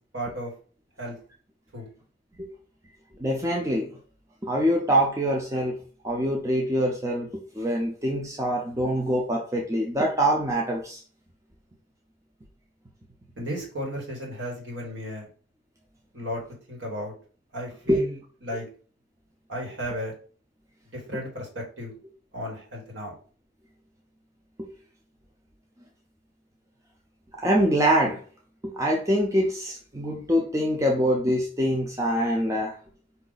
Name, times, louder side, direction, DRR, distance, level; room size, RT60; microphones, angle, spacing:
voice 1, 0.1-0.5 1.0-1.2 1.7-1.9 13.4-15.3 16.1-16.4 16.7-17.1 17.5-18.7 19.5-20.1 20.9-21.9 22.3-23.1, equal, 65° right, -1 dB, 1.8 m, -34 dB
voice 2, 3.2-3.9 4.4-5.8 6.0-11.0 17.9-18.0 24.6-24.7 27.4-28.2 28.6-32.8, equal, 15° right, 0 dB, 0.6 m, -24 dB
4.8 x 2.7 x 4.0 m, 0.41 s
head